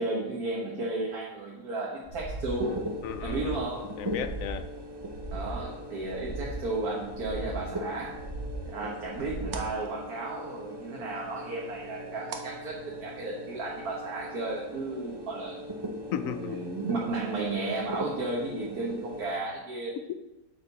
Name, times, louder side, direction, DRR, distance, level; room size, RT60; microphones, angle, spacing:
voice 1, 0.0-2.7 3.2-3.8 5.3-8.1 8.7-15.6 16.2-20.0, right 2 dB, 60° right, -3 dB, 1.7 m, -33 dB
sound 1, 2.0-2.5 2.9-3.5 3.9-4.5 5.0-5.6 6.0-6.6 7.0-7.6 8.0-8.6 9.0-9.6, right 1 dB, 5° left, 3.2 m, -38 dB
sound 2, 2.5-19.4, equal, 40° right, 0.3 m, -40 dB
voice 2, 3.0-3.6 4.0-4.7 16.1-16.6 20.1-20.2, left 9 dB, 70° left, 11 dB, 0.8 m, -34 dB
sound 3, 8.1-13.5, right 5 dB, 90° right, 1.6 m, -48 dB
9.1 x 7.3 x 4.1 m, 0.99 s
omnidirectional pair, 1.8 m